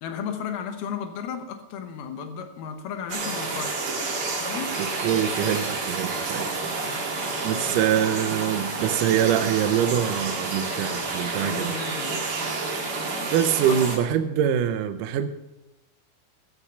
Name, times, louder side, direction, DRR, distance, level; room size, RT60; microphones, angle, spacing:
voice 1, 0.0-4.0 4.4-4.7 6.8-7.9 11.4-12.2 13.7-13.8, left 7 dB, 85° left, 6 dB, 2.9 m, -35 dB
sound 1, 3.1-14.0, right 3 dB, 45° right, 2.2 m, -29 dB
voice 2, 4.8-6.6 7.4-11.7 13.3-15.3, right 9 dB, 80° right, 8 dB, 2.0 m, -24 dB
14.5 x 5.7 x 8.1 m, 0.96 s
omnidirectional pair, 4.3 m